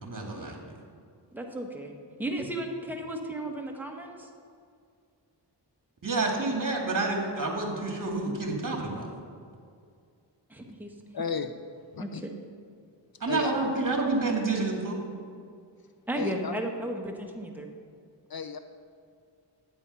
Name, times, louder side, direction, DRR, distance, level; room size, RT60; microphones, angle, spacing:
voice 1, 0.0-0.6 6.0-9.1 13.2-15.0, right 3 dB, 45° right, 1 dB, 2.5 m, -29 dB
voice 2, 1.3-4.3 10.5-10.9 12.0-12.3 16.1-17.7, right 1 dB, 5° right, 1 dB, 1.5 m, -34 dB
voice 3, 11.1-11.5 11.9-12.2 13.3-13.7 16.1-16.5 18.3-18.6, left 6 dB, 55° left, 8 dB, 0.7 m, -33 dB
11.5 x 8.7 x 5.6 m, 2.3 s
cardioid pair, 60°, 44 cm